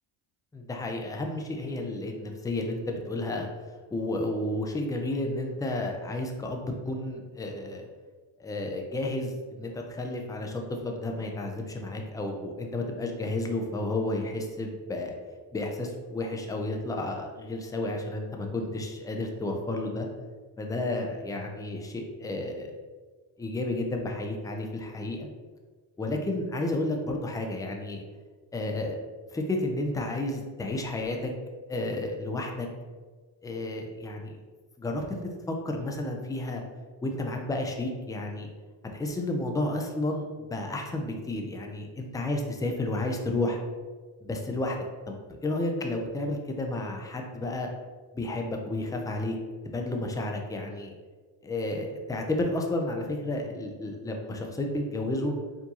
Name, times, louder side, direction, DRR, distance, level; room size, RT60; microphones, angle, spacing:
voice 1, 0.5-3.5 3.9-7.9 8.4-15.1 15.5-20.1 20.6-22.7 23.4-25.3 26.0-28.0 28.5-29.0 29.3-31.3 31.7-32.7 33.4-34.4 34.8-36.6 37.0-38.5 38.9-43.6 44.2-44.8 45.1-47.7 48.1-49.4 49.6-50.9 51.4-55.3, left 2 dB, 10° left, 2 dB, 0.3 m, -31 dB
4.6 x 2.6 x 2.8 m, 1.4 s
cardioid pair, 100°, 49 cm